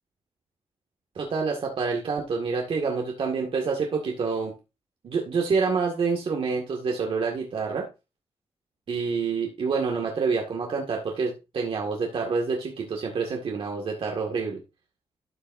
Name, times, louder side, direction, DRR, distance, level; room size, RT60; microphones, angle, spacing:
voice 1, 1.2-4.5 5.0-7.9 8.9-14.6, right 5 dB, 60° right, 1 dB, 1.8 m, -27 dB
13.0 x 6.8 x 2.6 m, 0.27 s
cardioid pair, 100°, 10 cm